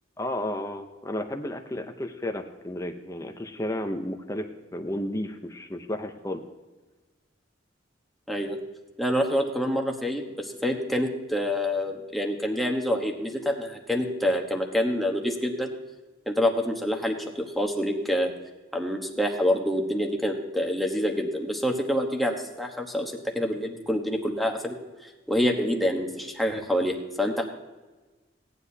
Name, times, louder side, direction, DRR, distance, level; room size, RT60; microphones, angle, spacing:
voice 1, 0.2-6.4, left 1 dB, 15° left, 6 dB, 0.6 m, -33 dB
voice 2, 8.3-8.6 9.0-15.7 16.3-18.3 18.7-24.8 25.0-27.4, equal, ahead, 1 dB, 1.1 m, -27 dB
17.0 x 9.9 x 2.8 m, 1.2 s
head